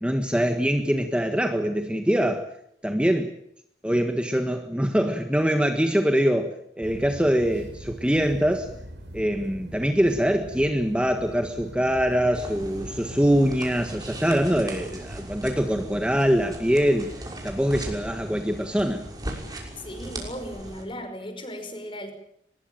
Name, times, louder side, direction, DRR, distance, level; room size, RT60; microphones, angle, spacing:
voice 1, 0.0-2.5 2.8-3.3 3.8-8.7 9.1-17.1 17.4-19.0, equal, 5° right, 5 dB, 1.6 m, -23 dB
sound 1, 6.8-17.4, equal, 80° right, 6.7 m, -43 dB
sound 2, 12.3-20.8, right 1 dB, 20° right, 6.1 m, -38 dB
voice 2, 19.8-22.1, equal, 30° left, 8 dB, 5.7 m, -36 dB
23.5 x 21.0 x 9.1 m, 0.72 s
head